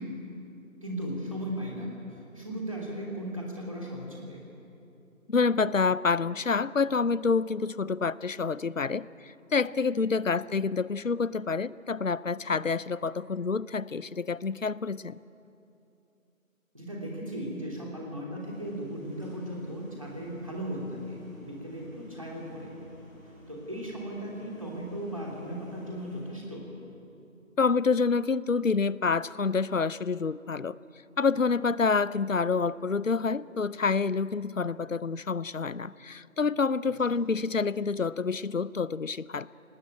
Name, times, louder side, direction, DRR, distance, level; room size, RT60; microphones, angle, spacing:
voice 1, 0.8-4.4 16.7-22.7 23.5-26.6, equal, 25° right, -2 dB, 3.2 m, -37 dB
voice 2, 5.3-15.2 27.6-30.8 31.2-39.5, left 4 dB, 65° left, 20 dB, 0.7 m, -27 dB
sound 1, 18.4-26.2, equal, 15° left, 6.0 m, -53 dB
21.0 x 19.5 x 8.9 m, 2.8 s
figure-of-eight pair, 180°, 41 cm